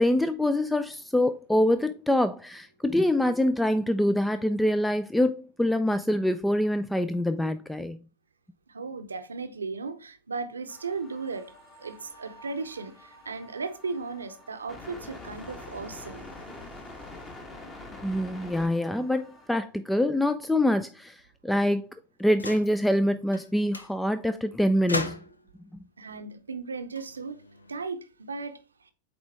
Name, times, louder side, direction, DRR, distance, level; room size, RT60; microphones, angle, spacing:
voice 1, 0.0-8.0 18.0-21.9 22.2-25.2, left 1 dB, 5° left, 0.3 m, -25 dB
voice 2, 8.7-11.5 11.8-16.3 26.0-27.4 27.7-28.9, right 4 dB, 75° right, 0.7 m, -36 dB
sound 1, 10.7-19.5, left 2 dB, 20° left, 1.3 m, -46 dB
sound 2, 22.3-22.8 23.3-23.5 23.7-23.9 24.9-25.5 26.8-27.8, left 2 dB, 80° left, 0.5 m, -36 dB
8.7 x 3.5 x 3.3 m
figure-of-eight pair, 90°, 0 cm